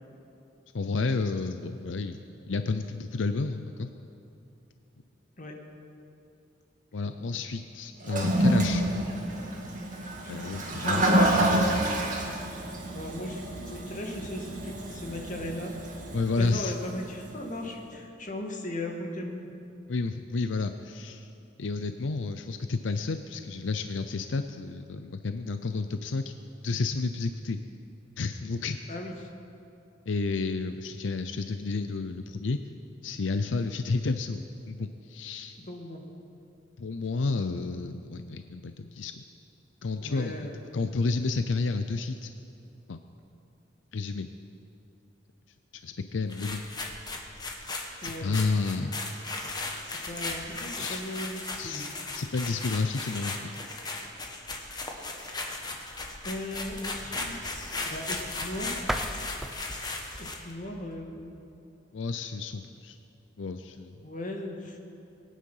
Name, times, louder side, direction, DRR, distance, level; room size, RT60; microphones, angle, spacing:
voice 1, 0.7-2.2 2.5-3.9 6.9-8.8 10.3-11.1 16.1-16.7 19.9-21.3 21.6-26.3 26.6-27.6 28.2-28.8 30.1-32.6 33.0-35.6 36.8-39.2 39.8-42.3 42.9-43.0 43.9-44.3 45.7-46.6 48.0-49.0 50.8-51.0 51.6-53.5 61.9-63.0 63.4-63.9, left 3 dB, 90° left, 8 dB, 0.6 m, -31 dB
Toilet flush, 8.0-17.3, right 1 dB, 45° right, 2.1 m, -28 dB
voice 2, 10.8-11.5 12.9-15.7 16.4-19.5 28.9-29.1 35.7-36.0 40.0-40.6 48.0-48.4 49.8-51.8 56.2-58.8 60.2-61.3 64.0-64.8, left 1 dB, 45° left, 1 dB, 1.9 m, -37 dB
sound 1, 46.3-60.5, left 2 dB, 20° left, 1.4 m, -37 dB
sound 2, 58.9-61.6, equal, ahead, 0.7 m, -37 dB
22.0 x 9.5 x 5.6 m, 2.7 s
head